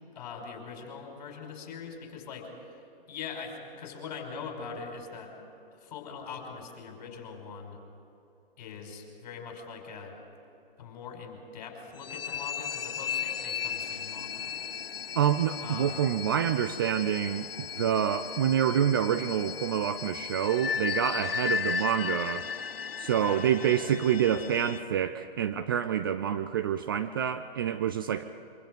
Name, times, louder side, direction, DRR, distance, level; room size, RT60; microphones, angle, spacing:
voice 1, 0.2-2.8 3.1-5.3 5.7-7.8 8.6-10.2 10.8-14.6 15.6-16.0 23.2-23.9, left 5 dB, 45° left, 2 dB, 5.4 m, -42 dB
sound 1, 12.0-24.8, left 7 dB, 75° left, 0.7 m, -35 dB
voice 2, 15.2-22.5 23.0-28.2, right 9 dB, 25° right, 10 dB, 0.4 m, -27 dB
25.0 x 24.5 x 5.3 m, 2.9 s
figure-of-eight pair, 130°, 29 cm